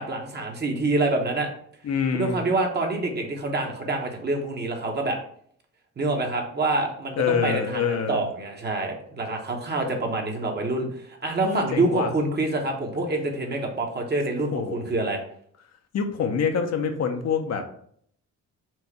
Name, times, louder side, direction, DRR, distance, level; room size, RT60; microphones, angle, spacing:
voice 1, 0.0-1.5 2.1-5.2 6.0-15.2, right 2 dB, 35° right, 2 dB, 1.1 m, -26 dB
voice 2, 1.8-2.4 7.2-8.3 11.4-12.1 14.5-14.8 15.9-17.6, left 6 dB, 60° left, 5 dB, 0.8 m, -26 dB
4.6 x 2.5 x 4.5 m, 0.63 s
cardioid pair, 90°, 30 cm